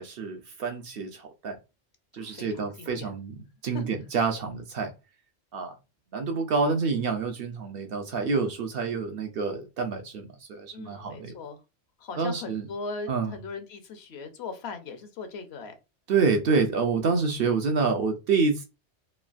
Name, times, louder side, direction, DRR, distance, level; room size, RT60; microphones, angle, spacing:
voice 1, 0.0-1.6 2.1-3.3 3.6-4.9 5.5-5.8 6.1-11.4 12.2-12.7 13.1-13.3 16.1-18.6, right 4 dB, 65° right, 0.7 m, -27 dB
voice 2, 2.2-3.1 3.7-3.8 10.7-11.6 12.0-15.7, left 4 dB, 70° left, 0.8 m, -39 dB
3.2 x 2.3 x 2.4 m
omnidirectional pair, 1.2 m